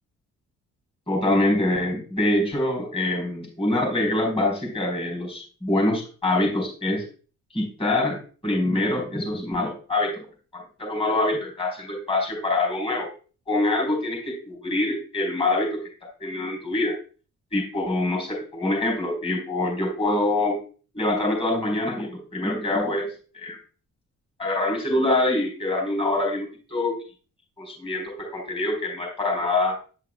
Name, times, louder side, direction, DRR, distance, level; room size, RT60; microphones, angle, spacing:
voice 1, 1.1-7.0 7.5-8.2 8.4-10.3 10.5-13.1 13.5-15.8 16.2-16.9 17.5-20.6 20.9-23.6 24.4-26.9 27.6-29.8, left 2 dB, 20° left, 0 dB, 4.0 m, -25 dB
9.9 x 5.7 x 2.3 m, 0.38 s
cardioid pair, 90°, 30 cm